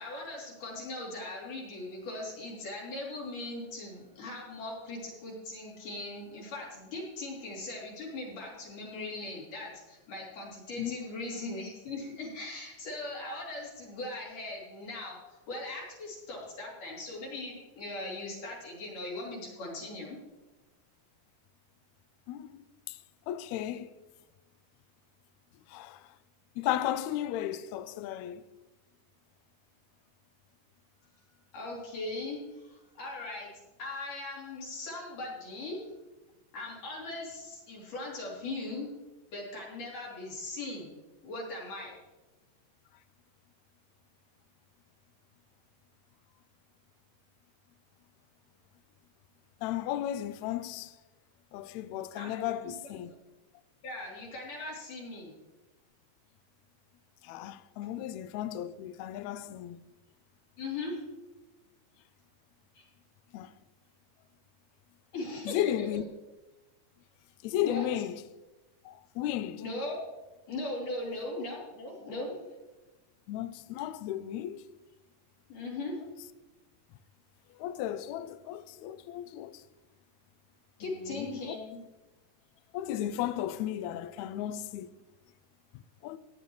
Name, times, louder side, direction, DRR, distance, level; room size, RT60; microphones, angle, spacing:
voice 1, 0.0-20.2 31.5-33.5 33.8-35.8 36.5-38.9 39.3-41.0 41.2-41.9 52.1-52.5 52.8-53.0 53.8-55.4 60.6-61.0 62.7-62.9 65.1-65.9 67.6-67.9 69.6-70.0 70.5-72.5 75.5-76.0 80.8-81.8, left 2 dB, 70° left, 4.8 m, -39 dB
voice 2, 22.3-23.0 23.3-23.9 25.7-26.1 26.6-28.4 49.6-50.9 51.5-53.1 57.2-59.8 63.3-63.5 65.4-66.0 67.4-68.2 68.8-69.6 73.3-74.7 77.6-79.6 80.8-81.5 82.7-84.9 86.0-86.2, left 12 dB, 85° left, 1.6 m, -34 dB
16.0 x 10.5 x 3.2 m
omnidirectional pair, 3.8 m